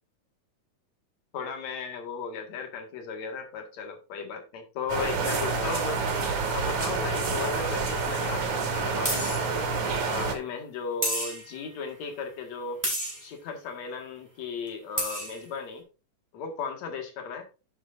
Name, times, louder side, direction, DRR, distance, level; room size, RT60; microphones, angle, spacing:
voice 1, 1.3-6.0 6.5-9.3 10.0-12.8 13.2-15.8 16.3-17.5, left 5 dB, 60° left, 4 dB, 3.1 m, -36 dB
sound 1, 4.9-10.4, right 4 dB, 65° right, 3.5 m, -28 dB
sound 2, 9.0-9.5 11.0-11.6 12.8-13.3 14.7-14.8 15.0-15.4, right 1 dB, 5° right, 4.1 m, -30 dB
11.0 x 8.2 x 2.6 m, 0.31 s
omnidirectional pair, 3.6 m